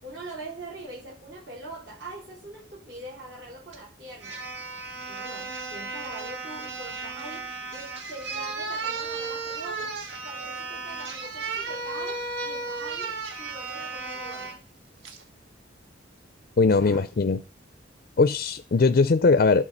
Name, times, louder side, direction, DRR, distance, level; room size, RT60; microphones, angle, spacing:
voice 1, 0.0-4.4 5.1-14.6 16.6-17.0, right 2 dB, 60° right, 4.1 m, -43 dB
sound 1, 3.7-3.8 4.2-14.6 15.0-15.2, right 4 dB, 85° right, 1.6 m, -34 dB
voice 2, 16.6-17.4 18.2-19.6, left 4 dB, 50° left, 0.5 m, -20 dB
12.5 x 4.7 x 5.6 m
head